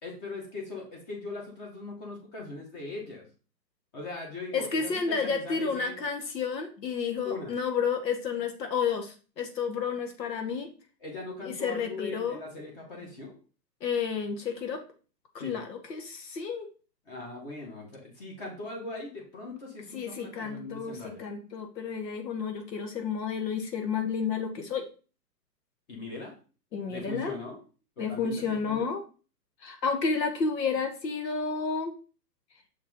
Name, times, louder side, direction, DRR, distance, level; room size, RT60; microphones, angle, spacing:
voice 1, 0.0-3.3 3.9-6.0 7.2-7.5 11.0-13.3 15.4-15.6 17.0-21.2 25.9-26.3 26.9-27.6 28.0-28.9, left 3 dB, 30° left, -1 dB, 1.7 m, -40 dB
voice 2, 4.5-10.7 11.4-12.4 13.8-14.8 15.3-16.7 19.9-24.9 26.7-27.3 28.0-29.0 29.6-31.9, left 5 dB, 80° left, 5 dB, 1.3 m, -31 dB
6.5 x 4.1 x 3.7 m, 0.36 s
hypercardioid pair, 150°, 50 cm